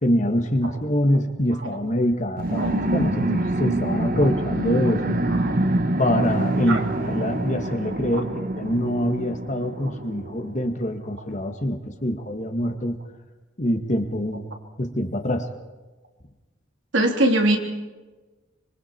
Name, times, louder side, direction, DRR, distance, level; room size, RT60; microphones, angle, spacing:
voice 1, 0.0-5.2 6.0-13.0 13.6-14.5 14.8-15.5, equal, 40° left, 5 dB, 1.9 m, -24 dB
sound 1, 2.4-10.5, right 1 dB, 45° right, 1.2 m, -26 dB
voice 2, 16.9-17.6, right 1 dB, 75° right, 2 dB, 3.3 m, -22 dB
25.5 x 24.5 x 4.5 m, 1.2 s
head